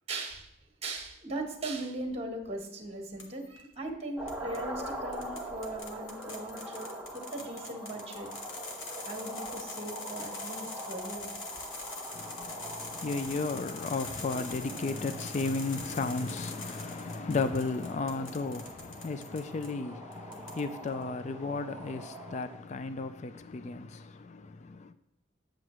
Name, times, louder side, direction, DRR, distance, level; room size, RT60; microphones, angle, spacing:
voice 1, 0.1-0.5 0.8-8.3 9.0-11.4 14.3-14.4, right 2 dB, 30° right, 1.3 m, -39 dB
sound 1, 3.2-3.6 4.3-19.7 20.1-20.9, left 3 dB, 80° left, 1.2 m, -44 dB
sound 2, 4.2-22.6, right 1 dB, 10° right, 1.0 m, -43 dB
voice 2, 13.0-18.6 19.0-19.9 20.6-22.0 22.3-23.3 23.6-23.8, left 3 dB, 35° left, 0.3 m, -33 dB
8.8 x 7.6 x 3.1 m
head